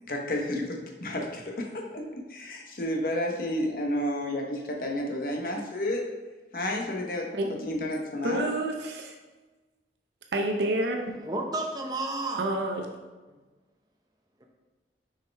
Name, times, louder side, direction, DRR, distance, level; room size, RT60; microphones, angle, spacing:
voice 1, 0.1-6.0 6.5-7.3 7.6-8.5, left 1 dB, 55° left, 0 dB, 1.0 m, -31 dB
voice 2, 8.2-9.1 10.3-11.0 12.4-12.9, right 1 dB, 75° right, 2 dB, 0.6 m, -28 dB
voice 3, 11.2-12.4 13.3-13.4, right 2 dB, 20° right, 1 dB, 0.7 m, -31 dB
6.3 x 4.8 x 3.4 m, 1.2 s
head